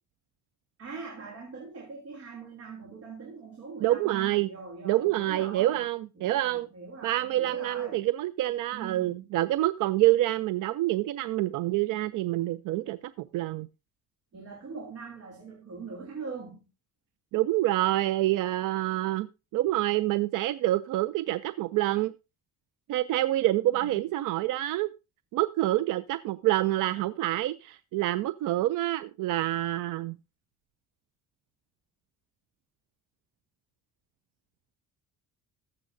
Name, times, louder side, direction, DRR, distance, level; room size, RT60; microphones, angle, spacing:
voice 1, 0.8-5.8 6.1-8.0 8.7-9.2 14.3-16.6 23.6-24.1, right 4 dB, 50° right, 2.9 m, -42 dB
voice 2, 3.8-4.5 4.8-6.7 7.0-13.7 17.3-19.3 19.5-22.1 22.9-24.9 25.3-30.2, right 16 dB, 80° right, 0.5 m, -27 dB
19.5 x 7.5 x 2.7 m
cardioid pair, 155°, 32 cm